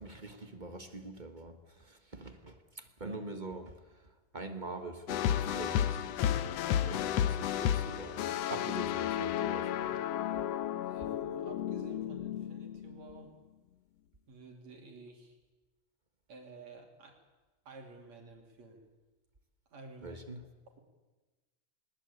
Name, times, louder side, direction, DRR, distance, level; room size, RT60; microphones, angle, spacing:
voice 1, 0.0-4.1 4.3-6.4 6.9-10.0 20.0-20.4, right 2 dB, 35° right, 6 dB, 0.7 m, -44 dB
voice 2, 3.0-3.3 10.8-13.3 14.3-15.4 16.3-17.2 17.7-18.8 19.7-20.2, right 3 dB, 60° right, 2 dB, 4.0 m, -51 dB
sound 1, 5.1-13.2, left 10 dB, 70° left, 1.7 m, -32 dB
21.0 x 20.5 x 8.3 m, 1.2 s
omnidirectional pair, 3.5 m